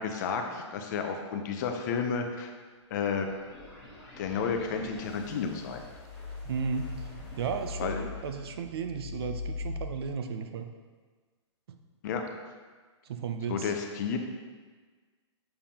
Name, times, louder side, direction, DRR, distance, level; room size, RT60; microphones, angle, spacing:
voice 1, 0.0-2.5 2.9-3.3 4.2-5.8 7.8-8.0 12.0-12.2 13.5-14.2, left 6 dB, 40° left, 5 dB, 0.6 m, -31 dB
sound 1, 3.0-9.8, left 4 dB, 10° left, 1.6 m, -41 dB
voice 2, 6.5-10.7 11.7-11.8 13.0-13.7, right 5 dB, 55° right, 7 dB, 0.5 m, -34 dB
6.7 x 5.3 x 2.9 m, 1.4 s
hypercardioid pair, 160°, 15 cm